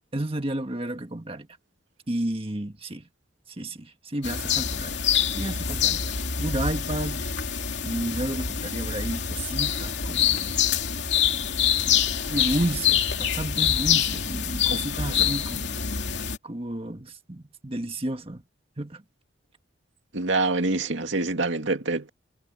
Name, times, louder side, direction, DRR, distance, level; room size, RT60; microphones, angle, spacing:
voice 1, 0.1-1.5 2.1-3.0 3.6-5.0 5.3-7.5 7.8-10.6 11.8-12.0 12.3-15.8 16.4-18.4 18.8-19.0, right 1 dB, 30° right, 1.6 m, -32 dB
sound 1, 4.2-16.4, left 8 dB, 70° left, 2.7 m, -26 dB
voice 2, 20.1-22.1, right 3 dB, 85° right, 2.4 m, -26 dB
head